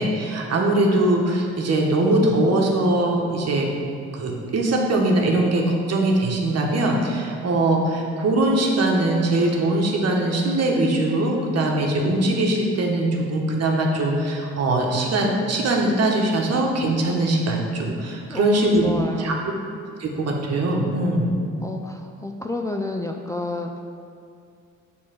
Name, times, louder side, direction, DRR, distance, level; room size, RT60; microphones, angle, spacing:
voice 1, 0.0-3.7 4.1-18.9 19.2-19.3 20.0-21.3, right 1 dB, 55° right, 0 dB, 1.4 m, -21 dB
voice 2, 18.3-19.3 21.6-23.8, left 2 dB, 10° left, 2 dB, 0.4 m, -29 dB
7.4 x 3.8 x 6.0 m, 2.3 s
cardioid pair, 90°, 30 cm